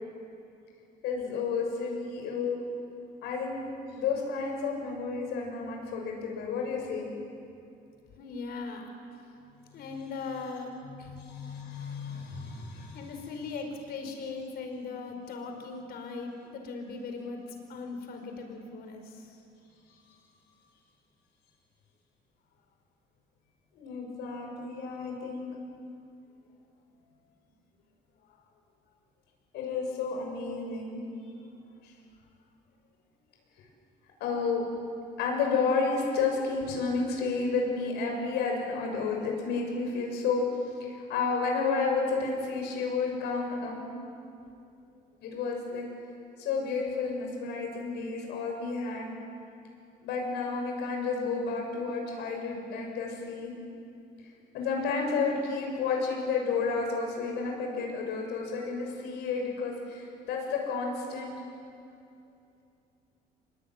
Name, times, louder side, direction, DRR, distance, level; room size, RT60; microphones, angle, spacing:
voice 1, 1.0-2.6 3.2-3.6 4.0-7.1 11.0-13.0 23.8-25.5 29.5-31.0 31.8-31.9 33.6-33.7 34.2-34.6 35.2-40.5 40.8-43.9 45.2-45.9 46.4-49.1 50.0-53.5 54.5-61.3, left 4 dB, 85° left, 1 dB, 7.1 m, -31 dB
voice 2, 8.2-8.9 9.7-10.7 11.0-11.2 12.9-19.4 28.2-28.4 35.1-35.2, left 4 dB, 65° left, 4 dB, 5.3 m, -39 dB
25.0 x 22.0 x 9.8 m, 2.6 s
cardioid pair, 110°, 17 cm